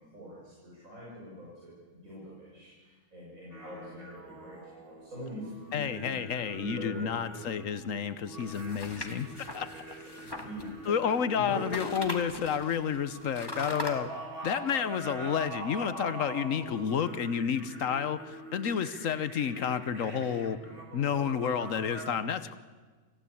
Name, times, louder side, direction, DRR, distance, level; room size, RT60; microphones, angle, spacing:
voice 1, 0.0-6.1 6.5-7.5 10.0-12.1 14.9-15.2, equal, 90° right, -6 dB, 6.4 m, -44 dB
sound 1, 3.5-22.1, right 2 dB, 45° right, 3.6 m, -45 dB
voice 2, 5.7-9.7 10.9-14.1 14.4-20.6 20.9-22.6, left 7 dB, 75° left, 13 dB, 1.3 m, -30 dB
sound 2, 8.4-11.2 11.5-13.9, left 1 dB, 20° left, 2.0 m, -41 dB
25.5 x 16.0 x 8.6 m, 1.4 s
omnidirectional pair, 1.4 m